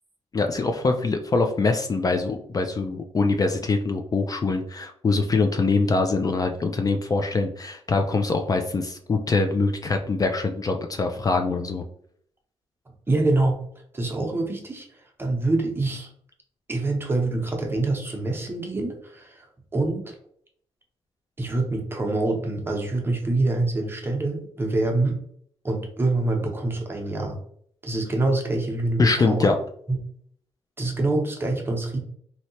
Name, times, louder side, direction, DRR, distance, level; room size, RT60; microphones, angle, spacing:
voice 1, 0.3-11.8 29.0-29.5, left 3 dB, 35° left, 4 dB, 0.4 m, -23 dB
voice 2, 13.1-13.6 13.9-14.9 15.2-16.1 16.7-19.5 19.7-20.1 21.4-25.2 25.6-27.4 27.8-29.5 29.9-30.0 30.8-32.0, right 2 dB, 20° right, 1 dB, 0.9 m, -25 dB
3.1 x 2.8 x 2.8 m, 0.64 s
cardioid pair, 85°, 11 cm